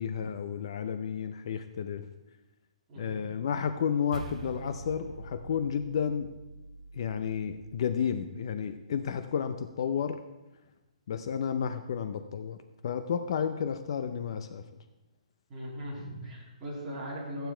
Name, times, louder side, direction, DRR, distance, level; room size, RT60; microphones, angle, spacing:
voice 1, 0.0-2.0 3.0-6.3 6.9-10.2 11.1-12.6 12.8-14.6, left 7 dB, 45° left, 10 dB, 0.6 m, -32 dB
voice 2, 2.9-3.2 15.5-17.5, equal, 15° right, -7 dB, 3.2 m, -39 dB
sound 1, 4.1-8.7, right 3 dB, 65° right, 2.5 m, -45 dB
14.0 x 9.1 x 4.5 m, 1.0 s
hypercardioid pair, 175°, 4 cm